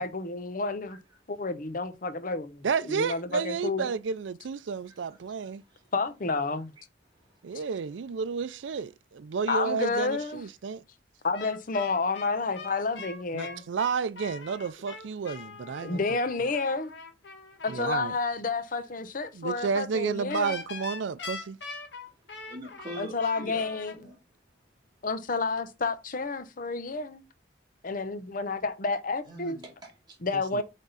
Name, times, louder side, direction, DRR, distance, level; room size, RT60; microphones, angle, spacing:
voice 1, 0.0-1.0 1.3-3.9 5.9-6.7 9.5-10.4 11.2-13.6 15.8-16.9 17.6-20.6 23.0-23.9 25.0-27.2 27.8-29.6 30.2-30.6, left 3 dB, 50° left, 0.8 m, -30 dB
voice 2, 0.9-1.2 4.9-5.0 6.5-6.6 12.7-12.8 18.7-18.9 22.5-24.2 29.2-30.2, right 1 dB, 25° right, 2.3 m, -44 dB
voice 3, 2.6-5.6 7.4-10.8 13.3-16.0 17.7-18.1 19.3-21.6 30.5-30.6, right 5 dB, 85° right, 0.4 m, -31 dB
sound 1, 11.3-17.8 20.3-23.9, left 4 dB, 70° left, 1.6 m, -42 dB
8.0 x 3.6 x 3.9 m
head